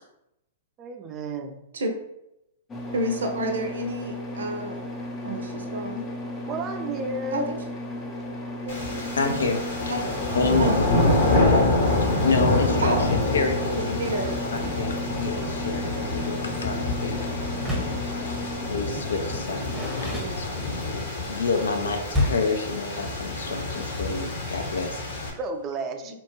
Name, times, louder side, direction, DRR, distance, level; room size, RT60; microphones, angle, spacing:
voice 1, 0.8-1.6 6.5-7.4 25.4-26.2, right 3 dB, 30° right, 6 dB, 0.4 m, -32 dB
sound 1, 2.7-18.7, left 1 dB, 20° left, 0.5 m, -35 dB
voice 2, 2.9-4.9 5.2-6.0 7.3-7.6 8.6-9.1 9.9-10.7 12.8-13.0 14.0-14.4 20.1-20.6 26.1-26.2, right 1 dB, 80° right, 4 dB, 0.5 m, -30 dB
sound 2, 8.7-25.3, left 2 dB, 65° left, 0.8 m, -27 dB
voice 3, 9.2-9.6 10.4-11.0 11.3-11.7 12.0-14.1 14.5-17.5 17.7-20.4 20.9-25.2, left 3 dB, 85° left, 5 dB, 0.4 m, -28 dB
Door, 17.5-18.1 19.2-20.9 22.1-22.6, left 1 dB, 5° right, 0.9 m, -29 dB
2.8 x 2.2 x 2.9 m, 0.84 s
hypercardioid pair, 125°, 0 cm